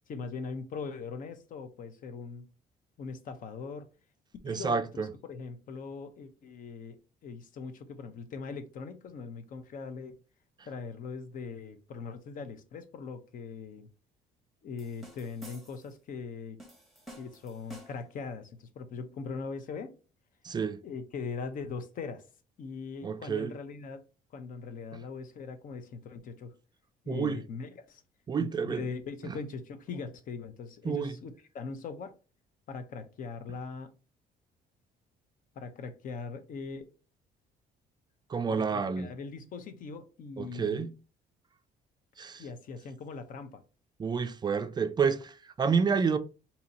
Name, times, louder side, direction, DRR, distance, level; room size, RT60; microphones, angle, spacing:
voice 1, 0.1-2.5 3.0-3.9 4.4-7.0 7.2-10.2 10.7-13.9 14.6-16.6 17.2-19.9 20.8-22.2 22.6-24.0 24.3-26.5 27.0-28.0 28.4-32.1 32.7-33.9 35.6-36.9 38.5-40.9 42.4-43.6, left 5 dB, 50° left, 0.7 m, -40 dB
voice 2, 4.4-5.1 20.4-20.8 23.0-23.5 27.1-27.4 28.3-28.8 29.2-29.4 30.8-31.1 38.3-39.1 40.4-40.9 42.2-42.4 44.0-46.2, right 6 dB, 25° right, 0.4 m, -29 dB
sound 1, 14.8-16.0 16.6-18.2, right 1 dB, ahead, 1.2 m, -51 dB
2.8 x 2.7 x 4.0 m
cardioid pair, 110°, 17 cm